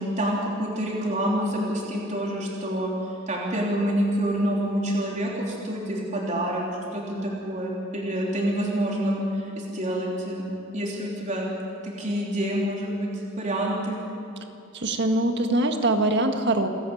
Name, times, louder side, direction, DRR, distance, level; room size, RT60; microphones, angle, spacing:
voice 1, 0.0-2.9 3.3-6.6 6.9-11.5 11.8-14.0, right 1 dB, 35° right, -3 dB, 3.4 m, -27 dB
voice 2, 14.7-16.7, right 2 dB, 60° right, 5 dB, 1.7 m, -23 dB
28.5 x 11.0 x 8.7 m, 2.7 s
head